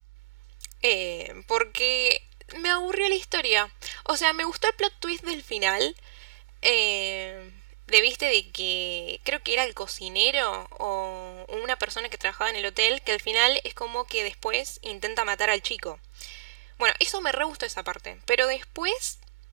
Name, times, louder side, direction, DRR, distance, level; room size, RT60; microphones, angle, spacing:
voice 1, 0.8-2.2 2.5-7.6 7.9-19.1, right 23 dB, 45° right, 5.3 m, -28 dB
hypercardioid pair, 120°, 12 cm